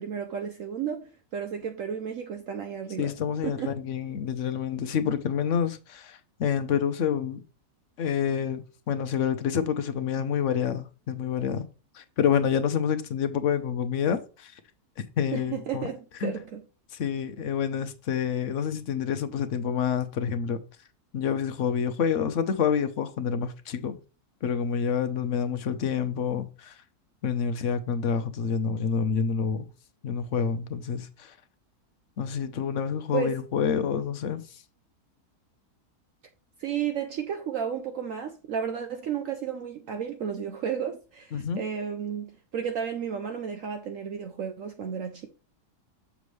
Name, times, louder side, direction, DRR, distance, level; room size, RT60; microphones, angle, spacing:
voice 1, 0.0-3.2 3.4-3.8 15.3-16.6 33.1-33.4 36.6-45.3, right 8 dB, 65° right, 0.9 m, -33 dB
voice 2, 3.0-7.4 8.0-11.7 11.9-14.5 15.2-15.9 16.2-16.3 16.9-20.6 21.1-24.0 24.4-26.7 27.2-29.7 30.0-31.3 32.2-34.4 41.3-41.6, left 7 dB, 60° left, 1.0 m, -28 dB
6.8 x 6.1 x 3.2 m
omnidirectional pair, 1.7 m